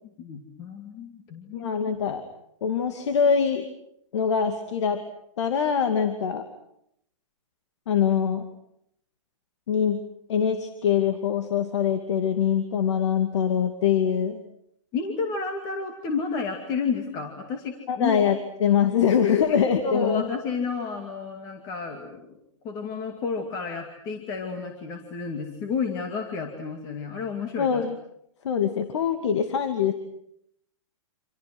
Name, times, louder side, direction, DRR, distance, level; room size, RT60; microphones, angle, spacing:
voice 1, 0.2-1.7 14.9-18.2 19.5-22.3 22.6-27.8, left 5 dB, 20° left, 3 dB, 2.4 m, -31 dB
voice 2, 1.5-2.2 2.6-3.7 4.1-5.0 5.4-6.4 7.9-8.5 9.7-10.0 10.3-14.4 17.9-18.4 18.6-20.3 27.6-28.0 28.4-29.9, left 7 dB, 60° left, 7 dB, 2.4 m, -23 dB
29.5 x 27.0 x 6.2 m, 0.74 s
hypercardioid pair, 170°, 17 cm